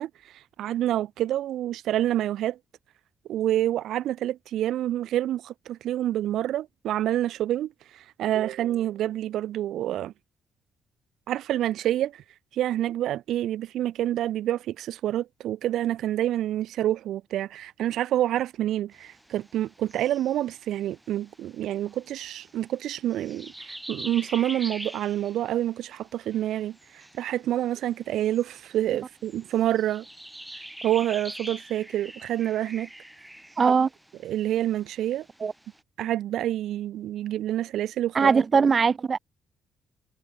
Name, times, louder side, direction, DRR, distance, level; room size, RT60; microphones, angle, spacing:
voice 1, 0.0-2.6 3.3-10.1 11.3-12.2 12.5-30.0 30.8-32.9 34.2-35.2 36.0-38.3, right 12 dB, 80° right, 1.5 m, -28 dB
sound 1, 18.9-35.8, right 1 dB, 5° right, 4.3 m, -45 dB
voice 2, 33.6-33.9 35.4-35.5 38.1-39.2, right 5 dB, 40° right, 2.3 m, -20 dB
cardioid pair, 90°, 0 cm